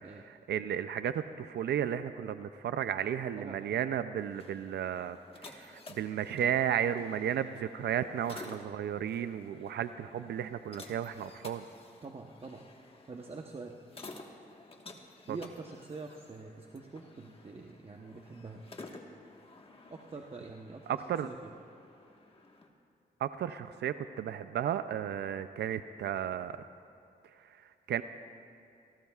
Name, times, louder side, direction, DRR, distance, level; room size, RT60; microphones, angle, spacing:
voice 1, 0.0-5.2 5.4-11.6 15.3-15.4 20.9-21.3 23.2-26.6 27.9-28.0, right 9 dB, 85° right, 11 dB, 0.4 m, -33 dB
sound 1, 4.2-22.7, left 2 dB, 35° left, 1.5 m, -53 dB
voice 2, 12.0-13.8 15.3-18.6 19.9-21.5, right 3 dB, 35° right, 1 dB, 1.0 m, -45 dB
27.5 x 18.5 x 2.4 m, 2.5 s
cardioid pair, 90°, 17 cm